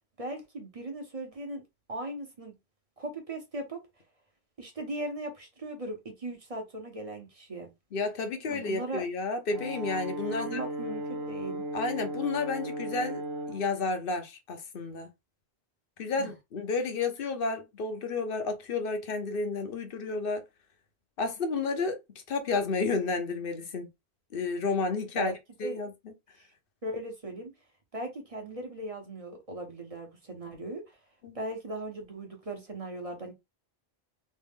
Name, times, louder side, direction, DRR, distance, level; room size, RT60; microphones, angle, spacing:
voice 1, 0.2-1.6 1.9-2.5 3.0-3.8 4.6-7.7 8.5-9.0 10.3-11.6 16.2-16.3 25.2-25.3 25.6-25.8 26.8-27.5 27.9-30.8 31.3-33.3, right 1 dB, 35° right, 1.0 m, -38 dB
voice 2, 7.9-10.6 11.7-15.1 16.0-20.4 21.2-22.0 22.3-23.9 24.3-25.3 25.6-25.9 31.2-31.4, left 4 dB, 60° left, 1.0 m, -31 dB
Brass instrument, 9.5-13.7, right 1 dB, 65° right, 1.1 m, -36 dB
3.2 x 2.5 x 3.5 m
omnidirectional pair, 1.1 m